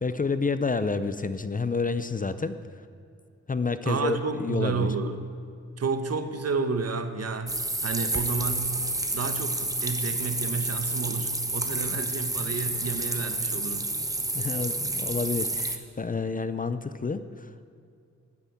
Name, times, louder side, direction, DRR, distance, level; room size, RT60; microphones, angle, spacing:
voice 1, 0.0-2.5 3.5-4.9 11.9-12.0 14.3-17.5, left 4 dB, 30° left, 12 dB, 0.6 m, -29 dB
voice 2, 3.8-5.2 5.8-8.8 9.1-13.9, right 4 dB, 60° right, 9 dB, 1.1 m, -30 dB
sound 1, 7.5-15.8, right 2 dB, 10° right, 0.9 m, -30 dB
14.0 x 9.5 x 8.5 m, 2.3 s
wide cardioid pair, 130°, 29 cm